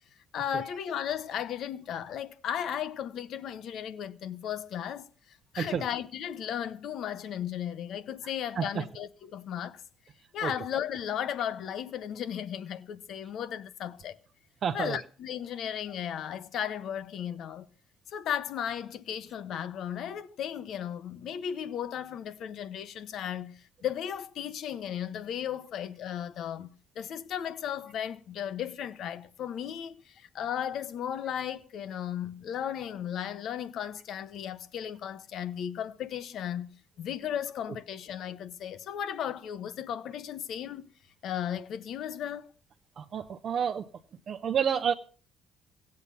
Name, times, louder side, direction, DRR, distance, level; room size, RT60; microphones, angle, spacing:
voice 1, 0.3-9.8 10.3-14.2 14.7-17.7 18.1-40.8 41.2-42.5, left 9 dB, 60° left, 1.2 m, -35 dB
voice 2, 14.6-15.0 43.0-43.8 44.3-44.9, right 7 dB, 45° right, 0.8 m, -29 dB
16.5 x 8.2 x 7.1 m
cardioid pair, 130°, 0 cm